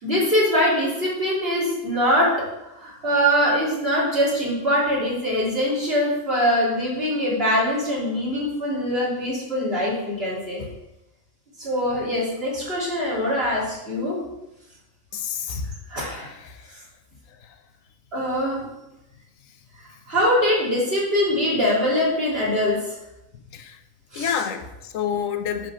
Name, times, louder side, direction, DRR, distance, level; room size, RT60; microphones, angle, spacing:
voice 1, 0.0-2.3 2.6-10.6 11.6-14.2 15.9-16.3 16.7-16.8 18.1-18.7 20.1-23.0 24.1-24.4, equal, 50° right, -7 dB, 3.9 m, -23 dB
voice 2, 15.1-15.6 16.4-16.6 23.5-23.8 24.1-25.7, left 8 dB, 85° left, 8 dB, 1.2 m, -28 dB
8.0 x 4.7 x 6.9 m, 0.92 s
omnidirectional pair, 1.3 m